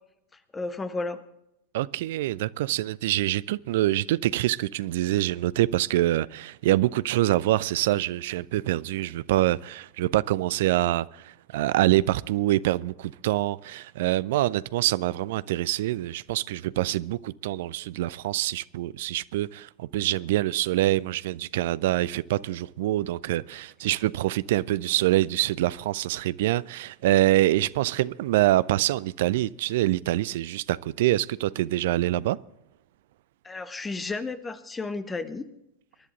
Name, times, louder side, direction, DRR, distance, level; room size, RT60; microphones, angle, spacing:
voice 1, 0.5-1.2 33.4-35.5, left 3 dB, 15° left, 1.3 m, -32 dB
voice 2, 1.7-32.4, right 15 dB, 55° right, 0.4 m, -25 dB
23.5 x 11.0 x 3.9 m
figure-of-eight pair, 90°, 0 cm